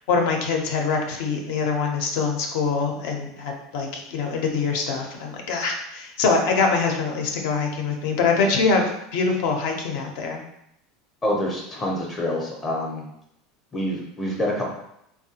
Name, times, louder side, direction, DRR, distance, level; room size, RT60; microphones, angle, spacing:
voice 1, 0.1-8.8 9.1-10.4, left 4 dB, 70° left, 2 dB, 0.6 m, -24 dB
voice 2, 11.2-13.1 13.7-14.7, left 1 dB, 20° left, -3 dB, 0.5 m, -26 dB
3.3 x 2.2 x 2.8 m, 0.78 s
supercardioid pair, 150°, 0 cm